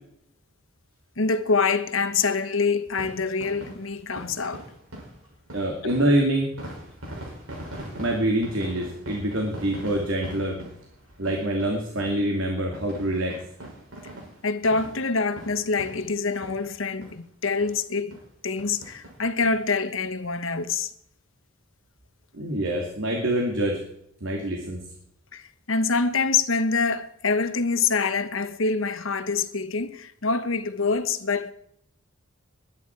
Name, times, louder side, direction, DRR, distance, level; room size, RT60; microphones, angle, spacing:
voice 1, 1.2-4.6 5.8-5.9 14.4-20.9 25.3-31.5, left 4 dB, 80° left, 1.2 m, -25 dB
sound 1, 2.9-16.8 17.0-17.2 17.6-17.7 18.1-18.3 18.6-19.5 20.0-20.1 20.2-20.3, right 1 dB, 90° right, 6.5 m, -42 dB
voice 2, 5.5-6.5 8.0-10.6 11.2-13.4 22.3-23.8 24.2-24.8, right 1 dB, 70° right, 2.7 m, -25 dB
21.0 x 10.5 x 4.7 m
head